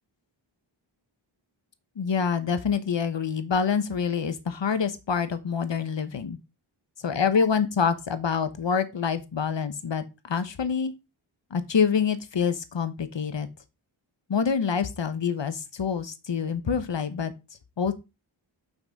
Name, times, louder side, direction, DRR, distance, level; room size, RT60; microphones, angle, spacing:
voice 1, 2.0-6.4 7.0-10.9 11.5-13.5 14.3-17.3 17.8-17.9, left 6 dB, 65° left, 11 dB, 1.1 m, -26 dB
6.0 x 5.3 x 5.2 m, 0.26 s
wide cardioid pair, 60°, 48 cm